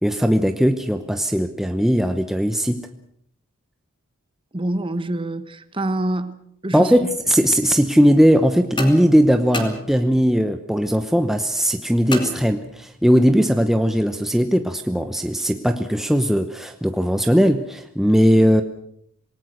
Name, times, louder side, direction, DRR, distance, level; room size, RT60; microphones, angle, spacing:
voice 1, 0.0-2.9 6.7-18.6, equal, ahead, 0.8 m, -18 dB
voice 2, 4.5-6.9, right 1 dB, 25° right, 1.2 m, -26 dB
sound 1, 8.8-10.4 12.1-13.1, left 1 dB, 25° left, 2.7 m, -30 dB
26.5 x 18.5 x 6.4 m
head